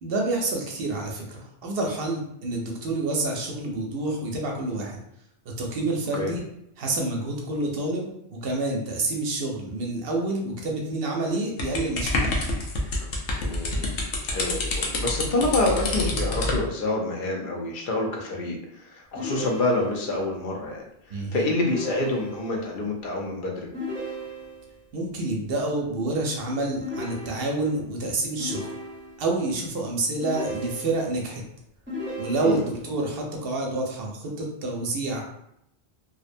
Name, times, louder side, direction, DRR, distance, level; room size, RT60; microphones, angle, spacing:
voice 1, 0.0-5.0 5.5-6.4 6.8-12.4 21.1-21.5 24.9-28.7 29.2-31.4 32.2-35.3, right 2 dB, 65° right, 0 dB, 0.7 m, -28 dB
sound 1, 11.6-16.6, left 2 dB, 80° left, 0.9 m, -27 dB
voice 2, 13.4-13.9 14.3-23.7 32.4-32.6, left 2 dB, 60° left, 1 dB, 0.6 m, -27 dB
sound 2, 19.2-20.2 21.6-22.7 23.7-24.8 26.8-27.8 28.4-29.4 30.2-31.2 31.9-32.9, equal, 15° right, 0.6 m, -35 dB
2.6 x 2.0 x 2.5 m, 0.77 s
omnidirectional pair, 1.2 m